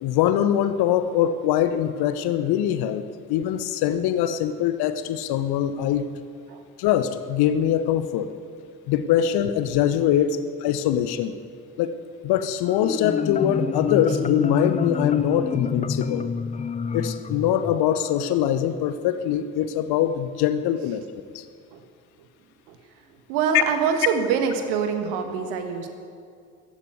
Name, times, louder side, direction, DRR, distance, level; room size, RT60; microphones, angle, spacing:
voice 1, 0.0-3.0 3.3-6.1 6.8-8.3 8.9-11.3 11.8-11.9 12.2-16.3 16.9-21.0 21.3-21.4, left 10 dB, 60° left, 12 dB, 1.0 m, -23 dB
Marimba xylophone, 12.7-18.2, left 6 dB, 15° left, 0.5 m, -27 dB
voice 2, 23.3-25.9, right 6 dB, 65° right, 7 dB, 1.5 m, -25 dB
14.5 x 8.9 x 9.3 m, 2.2 s
figure-of-eight pair, 45°, 44 cm